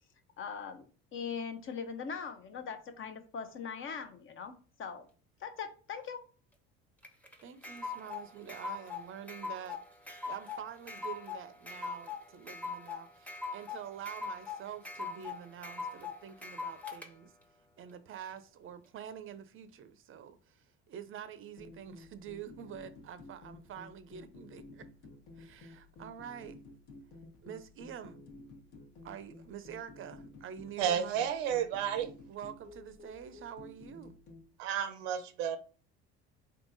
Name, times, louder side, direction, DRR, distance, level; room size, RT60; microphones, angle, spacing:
voice 1, 0.4-0.9 1.1-4.5 4.8-5.1 5.4-6.2, left 6 dB, 40° left, 0.8 m, -40 dB
sound 1, 7.0-17.1, left 4 dB, 5° left, 0.8 m, -41 dB
voice 2, 7.4-9.8 10.1-17.3 17.8-24.9 25.4-26.6 27.4-28.2 29.0-31.3 32.3-34.2, right 8 dB, 40° right, 0.6 m, -46 dB
sound 2, 21.6-34.5, left 2 dB, 65° left, 1.2 m, -53 dB
voice 3, 30.8-32.1 34.6-35.6, right 9 dB, 85° right, 0.7 m, -32 dB
3.7 x 2.8 x 3.9 m
supercardioid pair, 90°, 31 cm